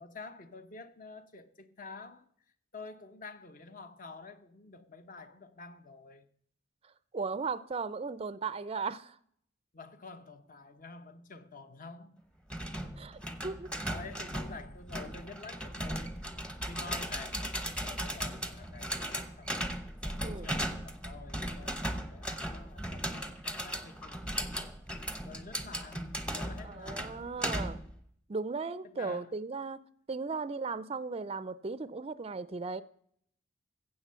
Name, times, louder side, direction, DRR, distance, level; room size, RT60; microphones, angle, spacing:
voice 1, 0.0-2.3 2.7-6.3 9.7-12.2 12.8-12.9 13.9-16.3 16.6-19.7 20.0-24.7 25.2-27.2 28.8-29.3, left 4 dB, 45° left, 0.9 m, -49 dB
voice 2, 7.1-9.2 13.0-13.7 20.2-20.5 26.6-27.8 28.3-32.8, right 4 dB, 30° right, 0.4 m, -37 dB
sound 1, 12.5-27.9, equal, 5° left, 0.8 m, -37 dB
15.5 x 7.6 x 5.6 m
head